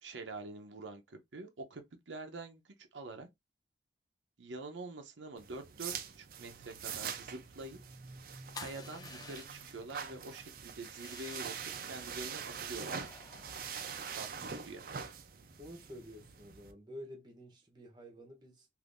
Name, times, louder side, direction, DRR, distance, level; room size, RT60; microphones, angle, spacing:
voice 1, 0.0-3.3 4.4-7.8 8.6-13.0 14.1-14.8, right 3 dB, 90° right, 0.7 m, -46 dB
sound 1, 5.4-16.7, right 6 dB, 50° right, 0.5 m, -44 dB
sound 2, 8.5-9.8 10.8-11.8 12.7-14.3, left 4 dB, 20° left, 0.5 m, -51 dB
voice 2, 15.6-18.7, equal, 25° right, 0.9 m, -50 dB
3.5 x 2.6 x 2.5 m
head